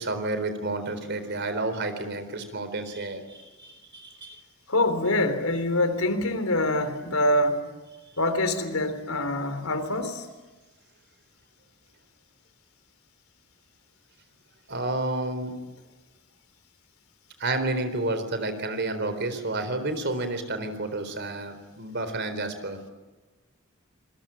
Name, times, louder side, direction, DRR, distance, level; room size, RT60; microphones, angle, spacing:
voice 1, 0.0-4.4 14.7-15.5 17.4-22.8, right 2 dB, 55° right, 10 dB, 4.0 m, -30 dB
voice 2, 4.7-7.6 8.2-10.3, left 1 dB, 85° left, 9 dB, 3.7 m, -25 dB
27.5 x 21.5 x 8.9 m, 1.2 s
head